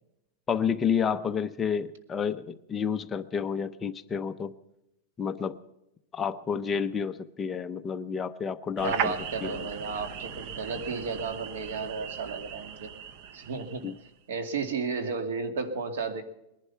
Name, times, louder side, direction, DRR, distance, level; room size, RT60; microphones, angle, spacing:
voice 1, 0.5-4.5 5.2-5.6 6.1-9.1 9.4-9.7 13.8-14.0, left 7 dB, 15° left, 9 dB, 0.6 m, -30 dB
sound 1, 8.8-14.1, right 8 dB, 45° right, 0.8 m, -37 dB
voice 2, 8.8-12.9 13.3-13.9 14.3-16.2, right 4 dB, 90° right, 9 dB, 2.3 m, -33 dB
20.5 x 11.5 x 5.7 m, 0.88 s
supercardioid pair, 170°, 0 cm